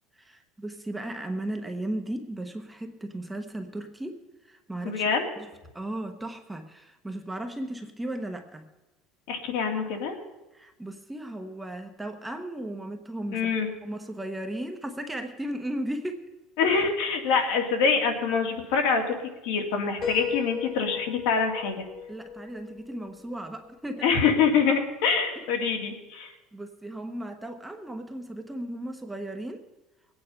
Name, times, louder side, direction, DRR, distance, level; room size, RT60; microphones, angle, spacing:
voice 1, 0.1-5.2 5.7-8.7 10.5-13.5 13.8-16.2 22.1-24.1 26.5-29.7, right 1 dB, 5° right, 4 dB, 0.8 m, -36 dB
voice 2, 4.8-5.3 9.3-10.2 13.3-13.7 16.6-21.9 24.0-26.3, left 5 dB, 70° left, 4 dB, 2.2 m, -25 dB
Piano, 20.0-23.8, left 7 dB, 30° left, 1.7 m, -37 dB
21.5 x 8.8 x 5.5 m, 1.1 s
cardioid pair, 170°, 0 cm